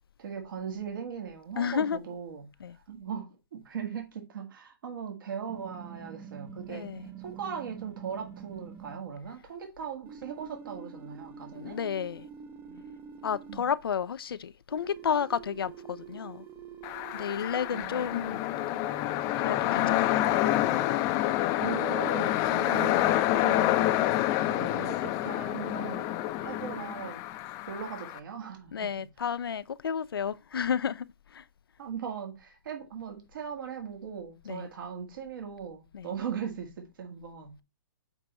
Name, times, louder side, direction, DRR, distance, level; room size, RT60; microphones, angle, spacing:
voice 1, 0.2-2.4 2.9-6.9 7.2-11.8 12.7-12.8 13.5-13.7 17.7-18.4 21.6-23.7 24.5-26.1 26.4-27.2 27.7-28.8 31.8-37.5, right 7 dB, 65° right, 1.8 m, -39 dB
voice 2, 1.6-2.0 2.6-2.8 6.7-7.1 11.5-12.3 13.2-16.5 17.1-18.5 19.3-20.2 22.2-22.4 28.7-31.5 34.4-34.7 35.9-36.1, left 7 dB, 85° left, 0.5 m, -32 dB
sound 1, 5.5-9.0 10.1-13.6 14.7-17.8 18.6-20.9, right 7 dB, 20° right, 0.6 m, -46 dB
sound 2, 16.8-28.2, left 14 dB, 30° left, 0.5 m, -28 dB
8.0 x 3.5 x 4.2 m
hypercardioid pair, 135°, 12 cm